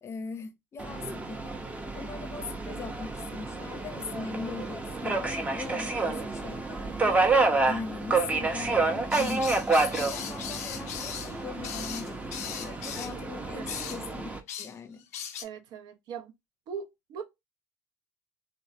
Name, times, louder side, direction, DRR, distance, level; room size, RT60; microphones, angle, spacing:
voice 1, 0.0-1.5 1.9-7.0 7.7-14.3 14.6-15.1, left 5 dB, 35° left, 0.6 m, -40 dB
Subway metro underground, 0.8-14.4, right 3 dB, 15° right, 0.6 m, -29 dB
sound 1, 9.1-13.1 13.7-14.0 14.5-14.7 15.0-15.4, left 9 dB, 90° left, 0.4 m, -38 dB
voice 2, 15.4-16.3 16.7-17.2, right 7 dB, 60° right, 0.6 m, -40 dB
3.1 x 2.0 x 2.6 m
hypercardioid pair, 75°, 8 cm